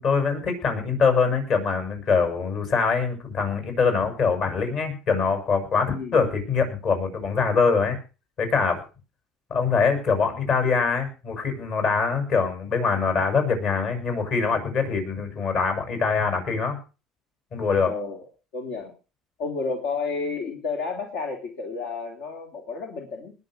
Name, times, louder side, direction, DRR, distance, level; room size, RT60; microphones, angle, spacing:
voice 1, 0.0-8.0 8.4-8.8 9.5-16.8 17.5-17.9, left 5 dB, 50° left, 6 dB, 6.9 m, -23 dB
voice 2, 17.8-18.2 18.5-18.9 19.4-23.3, left 4 dB, 75° left, 2 dB, 3.3 m, -31 dB
20.5 x 7.0 x 6.3 m, 0.35 s
cardioid pair, 135°, 0 cm